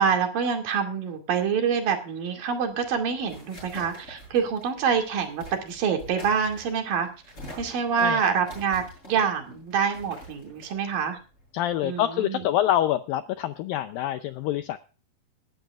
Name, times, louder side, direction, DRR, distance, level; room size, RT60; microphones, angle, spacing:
voice 1, 0.0-7.1 7.6-11.2 11.8-12.4, right 6 dB, 55° right, 4 dB, 3.8 m, -26 dB
sound 1, 2.7-11.9, equal, 15° left, 7.8 m, -46 dB
voice 2, 11.5-14.8, left 12 dB, 85° left, 10 dB, 2.0 m, -26 dB
19.5 x 12.5 x 2.4 m, 0.35 s
omnidirectional pair, 4.9 m